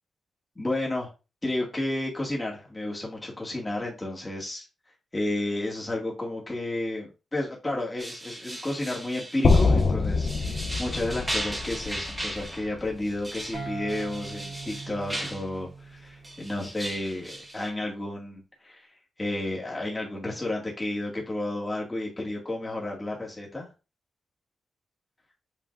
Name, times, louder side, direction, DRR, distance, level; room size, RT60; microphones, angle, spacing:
voice 1, 0.6-1.1 1.4-4.6 5.1-18.8 19.2-23.7, left 1 dB, 15° left, -2 dB, 2.0 m, -32 dB
sound 1, 8.0-15.5 16.2-17.7, right 1 dB, 10° right, 1.3 m, -37 dB
sound 2, 9.4-13.6, left 4 dB, 45° left, 0.6 m, -25 dB
sound 3, 13.5-17.2, right 4 dB, 70° right, 2.6 m, -41 dB
7.5 x 5.1 x 2.5 m, 0.30 s
wide cardioid pair, 165°, 0 cm